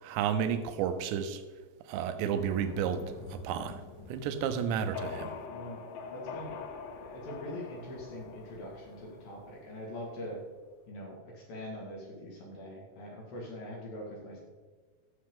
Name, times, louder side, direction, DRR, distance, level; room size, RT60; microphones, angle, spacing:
voice 1, 0.0-1.4 1.9-3.0 3.3-3.8 4.1-5.3, right 8 dB, 80° right, 9 dB, 2.9 m, -31 dB
sound 1, 2.3-10.0, left 6 dB, 80° left, 2.0 m, -44 dB
voice 2, 4.8-5.8 6.1-6.5 6.9-10.4 10.9-14.4, equal, 60° left, -2 dB, 3.2 m, -43 dB
13.5 x 7.0 x 3.7 m, 1.4 s
omnidirectional pair, 5.2 m